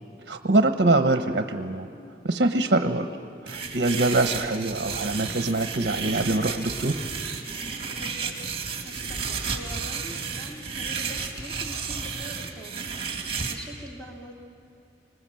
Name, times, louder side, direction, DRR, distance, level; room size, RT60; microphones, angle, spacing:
voice 1, 0.3-1.9 2.2-3.1 3.4-7.0, right 2 dB, 60° right, 7 dB, 0.9 m, -24 dB
sound 1, 3.5-13.5, right 5 dB, 30° right, 2.3 m, -32 dB
voice 2, 7.9-8.4 8.8-12.7 13.5-14.3, equal, 5° left, -2 dB, 2.7 m, -43 dB
26.5 x 19.5 x 7.6 m, 2.6 s
head